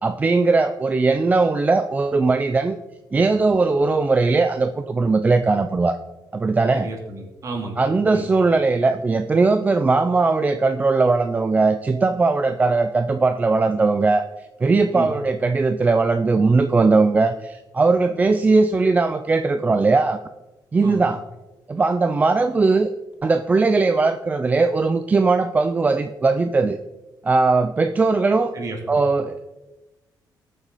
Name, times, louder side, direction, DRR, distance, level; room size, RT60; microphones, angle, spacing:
voice 1, 0.0-2.8 3.1-6.0 6.3-6.9 7.8-14.2 14.6-20.2 20.7-21.2 21.7-22.9 23.2-26.8 27.2-28.5 28.9-29.5, right 3 dB, 20° right, 8 dB, 0.4 m, -19 dB
voice 2, 6.7-7.8 8.1-8.2 14.9-15.1 20.8-21.0 28.5-29.0, right 3 dB, 45° right, 2 dB, 2.6 m, -32 dB
19.5 x 7.1 x 4.1 m, 1.1 s
wide cardioid pair, 165°, 8 cm